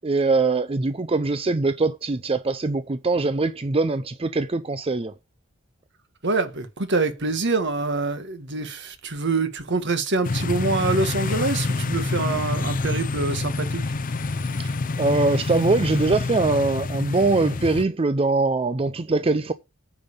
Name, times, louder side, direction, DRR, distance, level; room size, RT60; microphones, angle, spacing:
voice 1, 0.0-5.1 14.6-14.7 15.0-19.5, right 3 dB, 30° right, 0.5 m, -22 dB
voice 2, 6.2-14.7, right 3 dB, 60° right, 1.7 m, -26 dB
sound 1, 10.2-17.8, left 3 dB, 45° left, 0.6 m, -27 dB
9.1 x 5.5 x 6.8 m
head